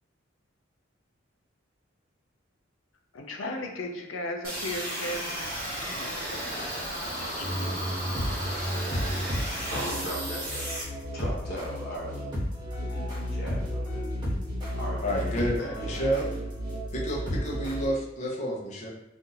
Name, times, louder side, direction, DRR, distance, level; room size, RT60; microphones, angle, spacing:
voice 1, 3.1-5.5 5.9-6.7 7.2-7.5, left 1 dB, 85° left, 3 dB, 0.6 m, -36 dB
sound 1, 4.4-10.8, equal, 45° right, 1.3 m, -34 dB
sound 2, 7.4-17.9, equal, 25° right, 1.2 m, -33 dB
voice 2, 9.1-10.8 11.1-12.3 12.7-14.2 14.7-16.1, equal, 55° left, -4 dB, 1.2 m, -39 dB
voice 3, 15.0-16.3 16.9-18.9, equal, 35° left, -4 dB, 0.8 m, -30 dB
2.6 x 2.6 x 3.9 m, 0.88 s
head